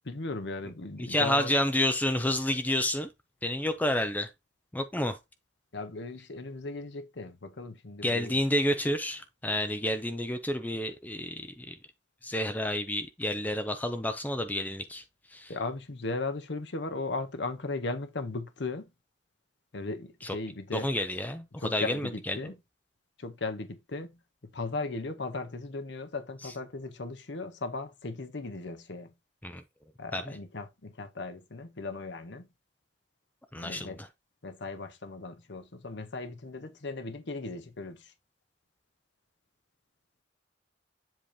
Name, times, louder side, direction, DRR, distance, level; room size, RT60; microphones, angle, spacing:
voice 1, 0.0-1.5 5.7-8.4 15.5-18.9 19.7-20.9 21.6-22.5 23.2-24.1 24.5-29.1 30.0-32.4 33.6-34.0 34.4-38.1, left 3 dB, 65° left, 0.9 m, -37 dB
voice 2, 1.0-3.1 3.4-4.3 4.7-5.2 8.0-11.7 12.2-15.0 15.3-15.5 20.2-20.4 20.7-22.4 29.4-29.6 30.1-30.2 33.5-34.1, left 1 dB, 10° left, 0.5 m, -30 dB
7.7 x 2.9 x 4.9 m
head